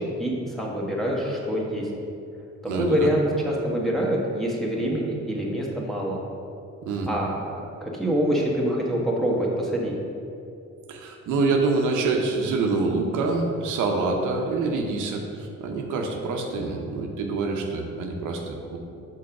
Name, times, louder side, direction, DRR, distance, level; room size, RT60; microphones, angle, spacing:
voice 1, 0.0-1.9 2.7-6.2 7.1-7.5 7.8-9.9, equal, ahead, -4 dB, 1.3 m, -25 dB
voice 2, 2.7-3.1 6.8-7.1 10.9-18.8, right 3 dB, 85° right, 2 dB, 0.8 m, -26 dB
5.3 x 3.8 x 5.9 m, 2.6 s
cardioid pair, 90°, 30 cm